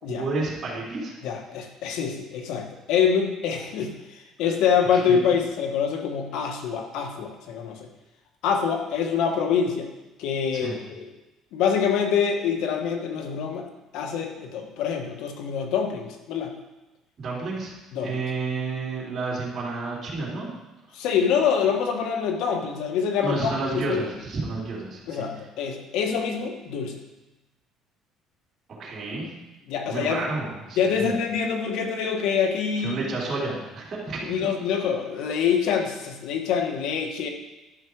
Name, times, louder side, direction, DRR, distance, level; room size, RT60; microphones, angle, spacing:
voice 1, 0.0-1.1 4.9-5.2 10.5-10.8 17.2-17.7 18.0-20.5 23.2-25.3 28.7-29.3 29.9-31.1 32.8-34.3, right 3 dB, 40° right, -5 dB, 3.5 m, -31 dB
voice 2, 1.2-7.9 8.4-9.9 10.2-11.1 11.5-13.6 13.9-16.5 17.9-18.2 20.9-24.0 25.1-27.0 29.7-30.3 30.8-33.0 34.2-37.3, left 7 dB, 75° left, 4 dB, 1.4 m, -25 dB
11.5 x 5.9 x 4.7 m, 1.0 s
cardioid pair, 120°, 0 cm